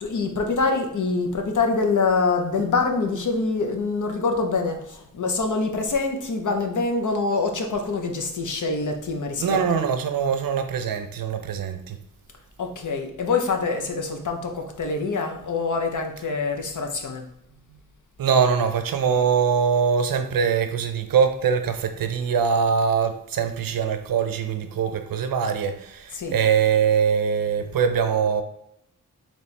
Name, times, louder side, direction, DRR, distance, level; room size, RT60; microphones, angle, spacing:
voice 1, 0.0-9.9 12.6-17.3 26.1-26.4, left 4 dB, 60° left, 0.8 m, -25 dB
voice 2, 9.4-12.0 17.7-17.8 18.2-28.4, right 6 dB, 80° right, 0.6 m, -23 dB
4.3 x 3.0 x 3.2 m
wide cardioid pair, 85°, 34 cm